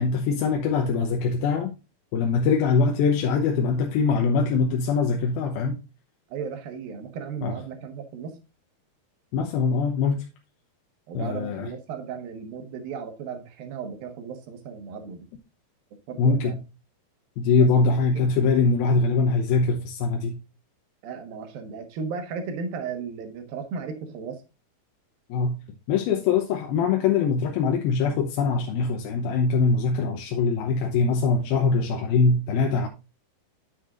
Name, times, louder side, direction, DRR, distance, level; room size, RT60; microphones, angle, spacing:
voice 1, 0.0-1.7 2.1-5.8 7.4-7.5 9.3-10.2 11.1-11.7 16.2-16.6 17.4-20.4 25.3-25.6 25.9-32.9, left 4 dB, 80° left, 2.7 m, -23 dB
voice 2, 6.3-8.4 11.1-15.3 16.1-16.6 17.6-18.0 21.0-24.4, right 5 dB, 70° right, 3.1 m, -35 dB
9.3 x 8.1 x 2.5 m
omnidirectional pair, 4.4 m